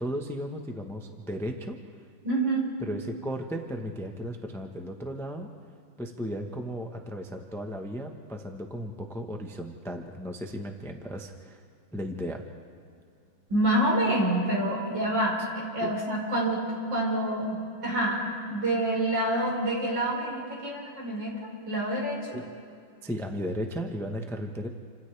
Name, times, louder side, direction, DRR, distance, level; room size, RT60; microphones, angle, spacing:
voice 1, 0.0-1.8 2.8-5.5 6.0-11.6 11.9-12.5 15.8-16.0 22.3-22.5 23.0-24.7, equal, ahead, 3 dB, 0.8 m, -35 dB
voice 2, 2.2-2.7 13.5-16.6 16.9-18.2 18.5-22.4, right 1 dB, 70° right, -3 dB, 5.4 m, -27 dB
29.0 x 26.0 x 3.4 m, 2.4 s
omnidirectional pair, 2.1 m